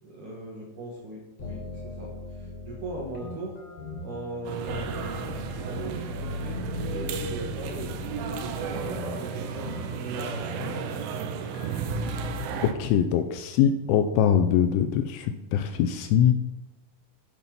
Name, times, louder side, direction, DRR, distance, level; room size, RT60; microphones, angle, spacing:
voice 1, 0.0-3.6 4.0-6.0 6.4-9.7 10.2-11.1, right 2 dB, 65° right, -3 dB, 2.2 m, -39 dB
sound 1, 1.4-13.0, left 3 dB, 45° left, 4.2 m, -38 dB
sound 2, 4.5-12.7, right 7 dB, 85° right, 3.2 m, -34 dB
voice 2, 12.6-16.3, left 9 dB, 85° left, 7 dB, 2.8 m, -23 dB
8.5 x 7.2 x 5.8 m, 0.96 s
omnidirectional pair, 5.7 m